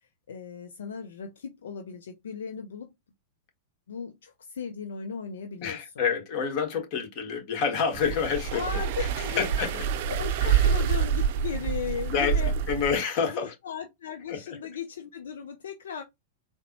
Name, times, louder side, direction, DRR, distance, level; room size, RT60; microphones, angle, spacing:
voice 1, 0.0-2.9 3.9-6.0 8.0-9.5 10.1-12.5 13.2-16.0, left 7 dB, 70° left, 0.5 m, -37 dB
voice 2, 5.6-8.6 9.0-9.1 9.4-9.8 10.4-10.6 12.1-13.5 14.3-14.6, left 6 dB, 45° left, 1.2 m, -28 dB
sound 1, 7.9-13.0, right 8 dB, 55° right, 0.4 m, -27 dB
3.9 x 2.1 x 2.9 m
hypercardioid pair, 100°, 0 cm